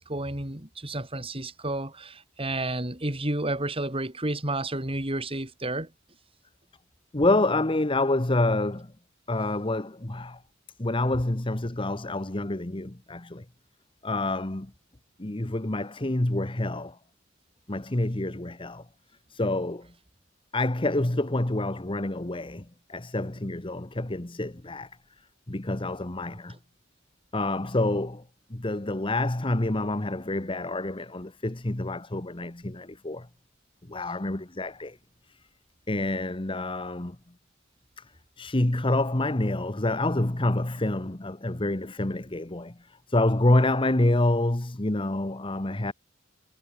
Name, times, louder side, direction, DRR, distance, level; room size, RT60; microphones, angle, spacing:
voice 1, 0.0-5.9, right 2 dB, 30° right, 3.8 m, -31 dB
voice 2, 7.1-8.9 9.3-10.4 10.8-13.4 14.0-14.7 15.2-17.0 17.7-18.9 19.3-19.9 20.5-24.9 25.5-26.6 27.3-28.2 28.5-33.3 33.9-35.0 35.9-37.2 38.0-38.1 38.4-45.9, left 2 dB, 25° left, 1.2 m, -27 dB
head